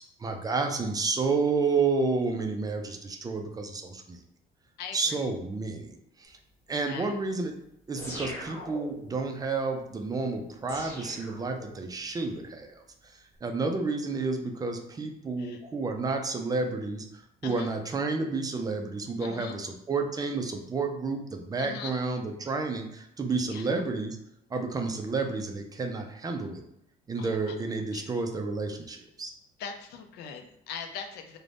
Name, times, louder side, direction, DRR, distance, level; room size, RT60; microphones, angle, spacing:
voice 1, 0.0-4.2 4.9-6.4 6.7-7.5 7.9-12.8 13.4-24.2 24.5-26.6 27.1-29.3, right 4 dB, 20° right, 4 dB, 0.3 m, -30 dB
voice 2, 4.8-5.2 6.9-7.1 15.4-15.6 17.4-17.7 19.2-19.7 21.6-22.0 23.4-23.7 27.2-27.5 27.9-28.1 29.6-31.4, left 6 dB, 75° left, 6 dB, 0.4 m, -41 dB
sound 1, 8.0-9.2 10.7-12.0, equal, 15° left, 1.1 m, -41 dB
2.5 x 2.1 x 3.2 m, 0.76 s
cardioid pair, 110°, 17 cm